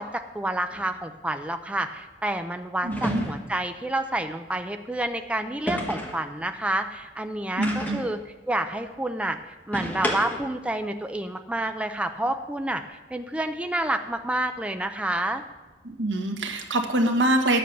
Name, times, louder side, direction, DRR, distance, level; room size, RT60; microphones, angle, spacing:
voice 1, 0.0-8.2 8.5-9.4 9.7-15.4, right 1 dB, 5° right, 7 dB, 0.4 m, -29 dB
sound 1, 0.7-0.9 2.9-3.6 5.7-6.3 7.6-8.2 9.7-10.6, equal, 10° left, 1.4 m, -30 dB
voice 2, 2.8-3.2 7.6-8.0 15.8-17.6, right 1 dB, 85° right, 3 dB, 1.4 m, -24 dB
10.5 x 7.7 x 6.7 m, 1.2 s
head